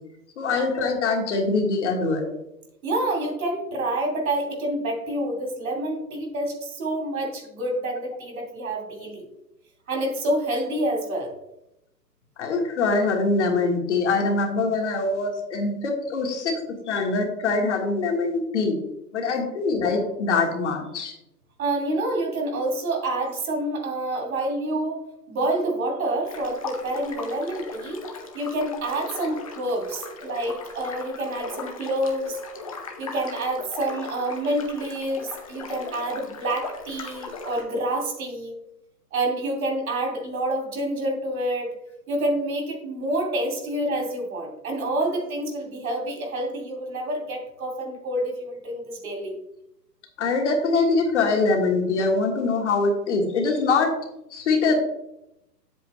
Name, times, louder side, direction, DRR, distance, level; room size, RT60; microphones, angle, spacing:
voice 1, 0.4-2.3 12.4-18.8 19.1-21.2 32.3-32.4 50.2-54.0 54.3-54.7, left 3 dB, 45° left, 2 dB, 1.6 m, -23 dB
voice 2, 2.8-9.3 9.9-11.3 21.6-28.0 28.3-32.4 33.0-38.5 39.1-41.8 42.1-49.4, right 1 dB, 55° right, 2 dB, 2.7 m, -28 dB
sound 1, 26.2-37.6, left 4 dB, 20° left, 0.6 m, -39 dB
7.8 x 7.8 x 3.2 m, 0.85 s
hypercardioid pair, 155°, 49 cm